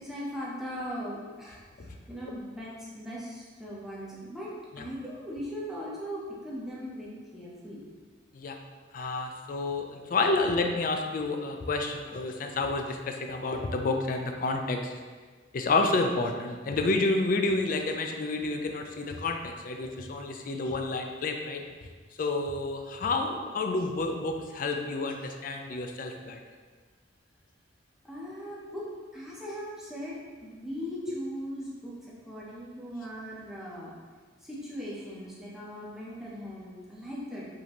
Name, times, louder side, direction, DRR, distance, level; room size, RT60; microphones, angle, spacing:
voice 1, 0.0-7.8 28.0-28.9 29.1-33.9 34.4-37.5, equal, ahead, -7 dB, 0.7 m, -39 dB
voice 2, 8.9-14.9 15.5-21.6 22.2-26.4 31.1-31.2, left 3 dB, 45° left, 4 dB, 0.4 m, -29 dB
4.9 x 2.7 x 3.0 m, 1.5 s
head